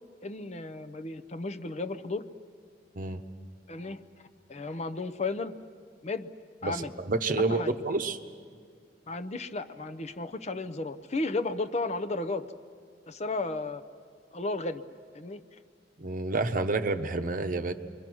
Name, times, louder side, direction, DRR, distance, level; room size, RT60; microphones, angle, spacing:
voice 1, 0.2-2.2 3.7-4.0 4.5-5.5 6.0-6.3 6.6-6.9 7.4-7.7 9.1-12.5 13.1-13.8 14.3-14.8 15.1-15.4, left 3 dB, 40° left, 10 dB, 0.7 m, -33 dB
voice 2, 6.6-8.2 16.0-17.7, right 3 dB, 50° right, 8 dB, 0.9 m, -29 dB
29.0 x 22.5 x 6.2 m, 2.1 s
head